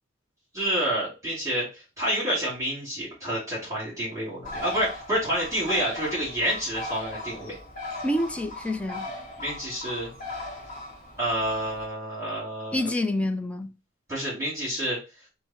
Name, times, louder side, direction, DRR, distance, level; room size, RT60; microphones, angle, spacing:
voice 1, 0.5-7.6 9.4-10.1 11.2-12.9 14.1-15.0, equal, 15° right, 2.8 m, -28 dB
Bird, 4.4-11.9, left 2 dB, 45° left, 1.6 m, -38 dB
voice 2, 8.0-9.1 12.7-13.7, left 1 dB, 5° left, 0.5 m, -27 dB
4.5 x 2.8 x 4.3 m
head